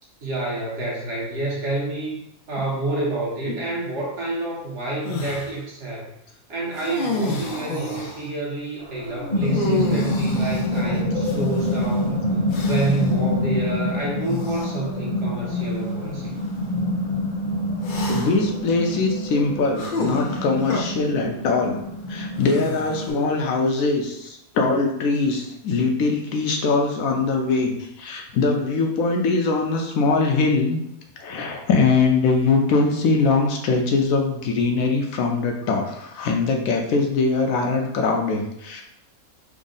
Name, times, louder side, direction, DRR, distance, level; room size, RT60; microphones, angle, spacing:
voice 1, 0.2-6.1 6.5-12.2 12.6-16.3, right 2 dB, 55° right, -4 dB, 1.2 m, -28 dB
sound 1, 5.0-5.5 6.7-8.3 9.4-11.7 12.5-13.1 14.2-14.7 15.6-15.7 17.8-18.5 19.8-20.8 22.4-23.2, left 3 dB, 90° left, 0.4 m, -29 dB
sound 2, 8.8-23.1, left 1 dB, 40° left, 0.8 m, -26 dB
voice 2, 18.1-21.8 22.1-30.8 31.2-38.8, left 4 dB, 75° left, 2 dB, 0.9 m, -22 dB
3.6 x 2.0 x 3.8 m, 0.78 s
omnidirectional pair, 1.5 m